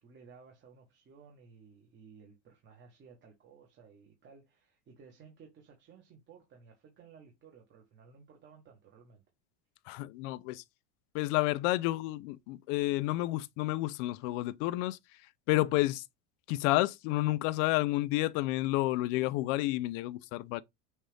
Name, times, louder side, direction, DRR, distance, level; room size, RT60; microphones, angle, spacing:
voice 1, 0.0-9.2 15.7-16.0, right 5 dB, 30° right, 1.1 m, -57 dB
voice 2, 9.9-10.6 11.1-15.0 15.5-16.0 16.5-20.6, left 18 dB, 70° left, 0.5 m, -30 dB
6.2 x 2.5 x 3.3 m
cardioid pair, 145°, 39 cm